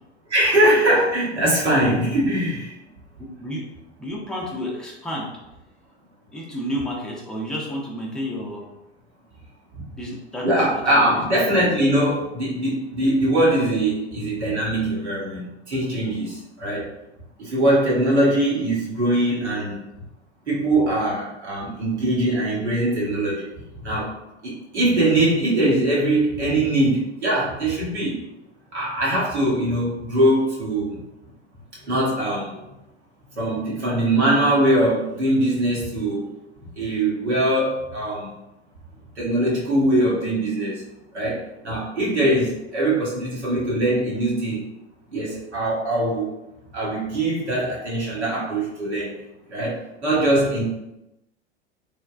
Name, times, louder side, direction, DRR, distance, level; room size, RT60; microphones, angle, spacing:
voice 1, 0.3-2.7 10.4-16.9 17.4-19.8 20.5-23.5 23.8-24.1 24.4-28.2 28.7-31.0 31.9-32.7 33.3-36.3 36.8-38.3 39.2-40.8 41.1-44.6 45.1-46.3 46.7-49.2 49.5-50.6, right 1 dB, 80° right, -6 dB, 1.0 m, -22 dB
voice 2, 3.2-3.6 4.0-5.3 6.3-8.7 10.0-10.5 10.9-11.1, equal, ahead, -3 dB, 0.5 m, -30 dB
3.1 x 2.1 x 2.4 m, 0.93 s
figure-of-eight pair, 85°, 34 cm